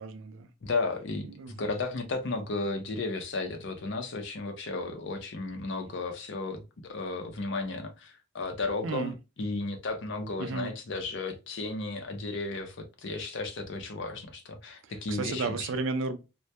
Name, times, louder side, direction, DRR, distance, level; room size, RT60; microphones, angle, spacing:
voice 1, 0.0-0.5 1.3-1.5 8.8-9.1 10.4-10.7 14.8-16.2, right 4 dB, 65° right, 0.4 m, -33 dB
voice 2, 0.6-15.6, left 3 dB, 60° left, 0.5 m, -34 dB
2.2 x 2.1 x 2.6 m
head